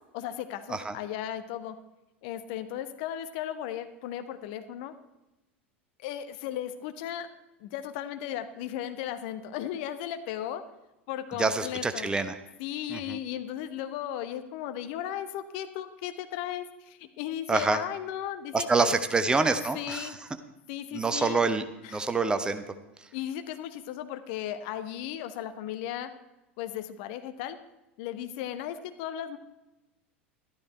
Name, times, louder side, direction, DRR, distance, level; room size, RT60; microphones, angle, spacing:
voice 1, 0.1-1.8 2.2-4.9 6.0-7.3 7.6-10.6 11.1-12.1 12.6-19.0 19.7-20.2 20.7-21.5 21.8-22.0 23.1-26.1 26.6-27.6 28.0-29.4, left 11 dB, 50° left, 10 dB, 1.0 m, -36 dB
voice 2, 11.4-12.3 12.9-13.2 17.5-17.8 18.5-20.1 20.9-21.6 21.9-22.6, right 3 dB, 15° right, 9 dB, 1.0 m, -26 dB
13.0 x 12.0 x 4.4 m, 0.99 s
figure-of-eight pair, 80°, 7 cm